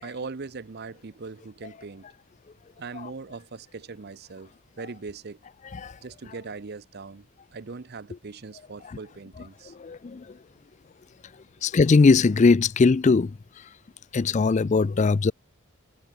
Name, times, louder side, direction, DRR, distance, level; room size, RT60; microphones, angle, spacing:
voice 1, 0.0-2.1 2.8-5.4 6.0-9.7, right 4 dB, 50° right, 0.6 m, -40 dB
voice 2, 9.7-10.4 11.6-13.4 14.1-15.3, left 4 dB, 35° left, 0.4 m, -20 dB
head